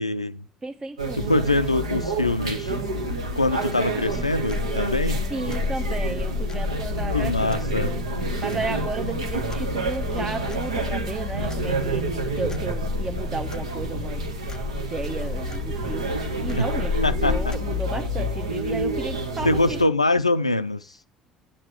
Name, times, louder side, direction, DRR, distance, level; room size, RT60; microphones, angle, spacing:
voice 1, 0.0-0.4 1.1-2.7 3.4-5.2 7.1-7.9 16.6-16.7 17.0-17.5 19.4-21.0, left 2 dB, 90° left, 0.3 m, -24 dB
voice 2, 0.6-1.3 5.3-8.1 8.4-14.3 14.7-19.8, right 3 dB, 25° right, 0.7 m, -33 dB
sound 1, 1.0-19.8, right 1 dB, 80° right, 1.0 m, -29 dB
sound 2, 4.0-17.6, left 4 dB, 20° left, 0.4 m, -32 dB
8.4 x 7.5 x 4.4 m
figure-of-eight pair, 60°, 3 cm